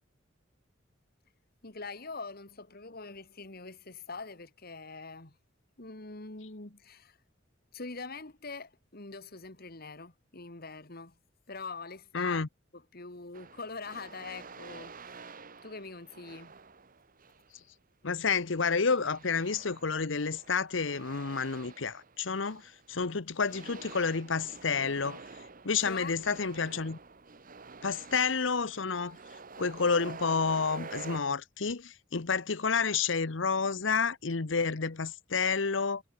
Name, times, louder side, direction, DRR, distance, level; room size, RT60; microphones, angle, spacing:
voice 1, 1.6-5.4 5.8-7.2 7.7-11.2 11.5-12.5 12.7-15.2 15.6-16.5 25.9-26.2, left 4 dB, 50° left, 2.3 m, -43 dB
voice 2, 12.1-12.5 18.0-25.2 25.6-27.0 27.8-29.2 29.6-36.0, left 5 dB, 70° left, 1.0 m, -30 dB
sound 1, 13.3-17.5 18.9-23.0 23.4-31.2, right 4 dB, 45° right, 1.6 m, -48 dB
head